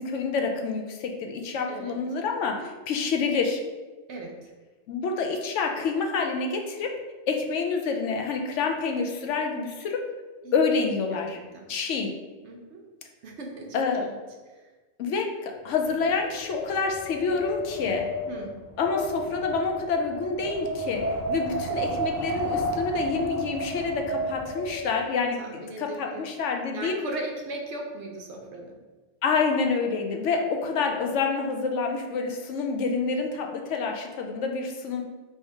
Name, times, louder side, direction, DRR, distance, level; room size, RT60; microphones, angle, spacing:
voice 1, 0.0-3.6 4.9-6.9 7.3-10.0 10.5-11.4 11.7-12.1 13.7-14.0 15.0-18.1 18.8-21.0 21.3-27.0 29.2-35.0, left 4 dB, 75° left, 3 dB, 0.9 m, -27 dB
voice 2, 12.4-12.8 13.2-14.1 14.5-14.6 18.3-18.6 21.9-22.0 25.4-26.2 26.7-28.8, right 2 dB, 65° right, 1 dB, 0.9 m, -38 dB
Wind, 15.8-25.0, equal, 25° left, 0.3 m, -32 dB
3.4 x 2.8 x 4.6 m, 1.3 s
omnidirectional pair, 1.3 m